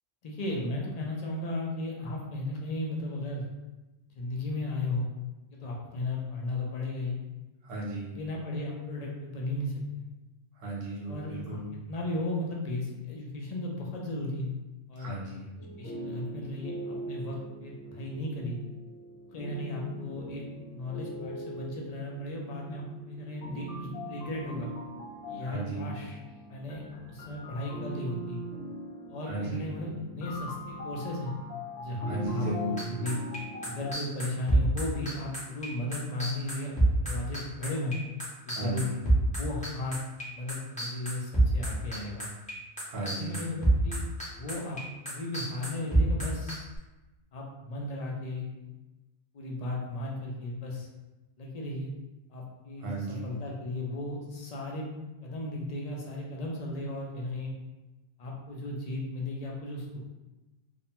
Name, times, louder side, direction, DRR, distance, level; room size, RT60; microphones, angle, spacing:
voice 1, 0.2-3.4 4.2-5.1 5.5-7.2 8.1-10.0 11.0-11.6 11.9-14.5 14.9-15.1 15.8-18.6 19.3-20.4 20.7-24.7 25.3-26.2 26.5-28.4 29.1-31.3 31.7-32.5 32.9-33.2 33.6-36.7 37.0-37.9 38.5-38.9 39.4-40.0 40.3-42.3 43.0-44.0 44.3-44.8 45.1-46.7 47.3-48.5 49.3-50.9 51.4-51.9 52.3-54.9 55.2-57.5 58.2-60.1, left 2 dB, 50° left, -2 dB, 0.5 m, -35 dB
voice 2, 7.6-8.1 10.6-11.7 15.0-15.4 25.5-25.9 29.3-29.7 32.1-32.8 38.5-38.8 42.8-43.4 52.8-53.3, right 1 dB, 60° right, -5 dB, 1.0 m, -35 dB
sound 1, 15.6-33.9, right 1 dB, 75° left, 0.9 m, -41 dB
sound 2, 32.8-42.5 42.8-46.8, right 2 dB, 10° left, 0.6 m, -26 dB
2.5 x 2.1 x 2.8 m, 1.1 s
omnidirectional pair, 1.1 m